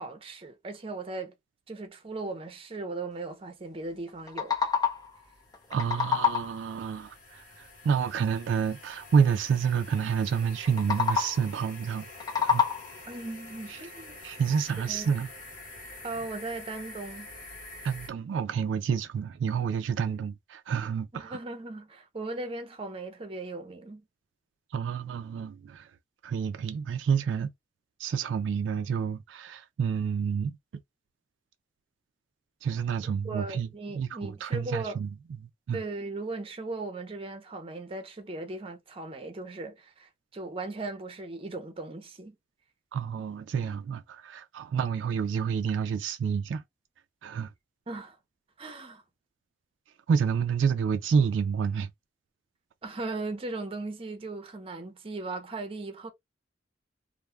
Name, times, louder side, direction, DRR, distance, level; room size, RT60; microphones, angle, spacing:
voice 1, 0.0-1.3 1.7-4.5 13.0-14.2 14.9-15.1 16.0-17.3 21.1-24.0 33.2-35.0 35.7-42.4 47.9-48.2 48.6-49.0 52.8-56.1, right 2 dB, 30° right, 0.6 m, -38 dB
sound 1, 4.1-5.2 5.5-6.7 10.7-11.5 12.0-13.1, left 7 dB, 20° left, 0.5 m, -28 dB
sound 2, 4.3-18.1, left 2 dB, 50° left, 1.0 m, -47 dB
voice 2, 5.7-12.1 12.4-12.6 13.7-13.8 14.2-15.3 17.8-21.4 24.7-25.9 26.2-27.5 28.0-30.5 32.6-33.7 33.9-35.1 35.7-35.8 42.9-46.6 47.2-47.5 50.1-51.9, right 6 dB, 80° right, 0.3 m, -29 dB
2.2 x 2.1 x 3.0 m
head